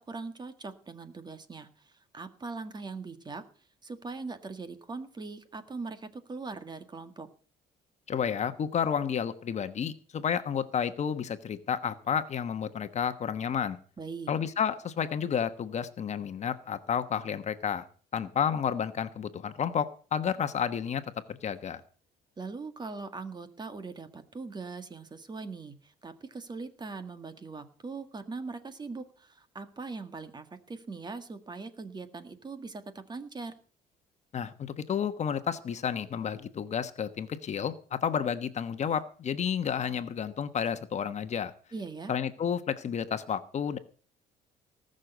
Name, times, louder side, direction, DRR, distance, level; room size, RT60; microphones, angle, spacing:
voice 1, 0.1-1.7 2.1-3.4 3.8-7.3 14.0-14.3 22.4-32.8 33.1-33.5 41.7-42.1, right 4 dB, 25° right, 10 dB, 1.7 m, -41 dB
voice 2, 8.1-13.8 14.3-17.8 18.1-21.0 21.3-21.8 34.3-41.5 42.1-43.8, left 7 dB, 40° left, 10 dB, 1.1 m, -31 dB
19.0 x 6.6 x 8.1 m, 0.42 s
cardioid pair, 110°, 17 cm